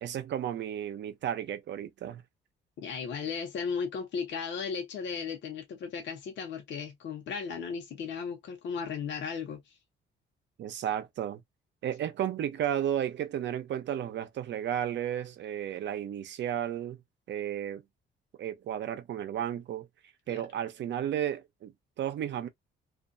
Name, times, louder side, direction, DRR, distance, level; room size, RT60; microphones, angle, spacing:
voice 1, 0.0-2.2 10.6-11.4 11.8-17.0 17.3-17.8 18.4-19.9 20.3-22.5, right 10 dB, 65° right, 0.6 m, -33 dB
voice 2, 2.8-9.8 20.3-20.4, left 6 dB, 65° left, 0.9 m, -36 dB
2.5 x 2.2 x 2.5 m
cardioid pair, 90°, 20 cm